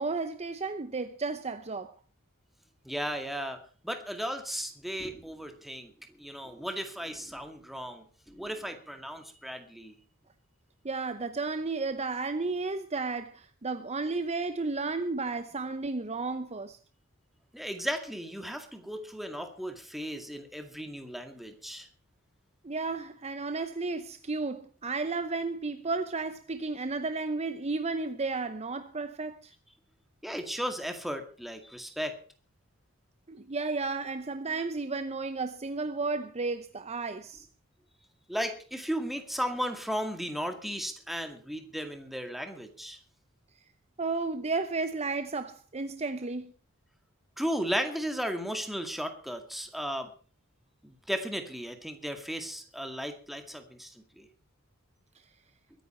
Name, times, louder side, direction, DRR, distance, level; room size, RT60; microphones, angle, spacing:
voice 1, 0.0-1.9 10.8-16.8 22.6-29.5 33.3-37.5 44.0-46.5, right 3 dB, 30° right, 0.8 m, -33 dB
voice 2, 2.9-3.6 3.8-9.9 17.5-21.9 30.2-32.2 38.3-43.0 47.4-50.1 50.8-54.3, equal, ahead, 2.1 m, -35 dB
22.5 x 10.0 x 4.5 m
head